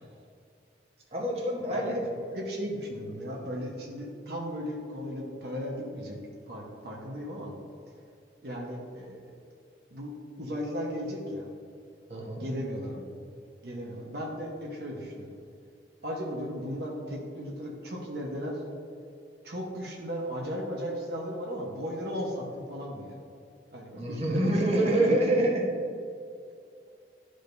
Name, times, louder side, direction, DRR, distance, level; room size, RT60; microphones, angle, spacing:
voice 1, 1.1-2.4 12.1-12.4 24.0-25.7, right 1 dB, 35° right, -3 dB, 1.2 m, -27 dB
voice 2, 1.7-2.0 2.3-6.2 6.5-7.5 8.4-9.3 9.9-11.5 12.1-13.1 13.6-15.3 16.0-18.6 19.4-23.2 23.7-25.1, equal, 60° right, -2 dB, 1.1 m, -36 dB
12.0 x 5.0 x 2.6 m, 2.4 s
head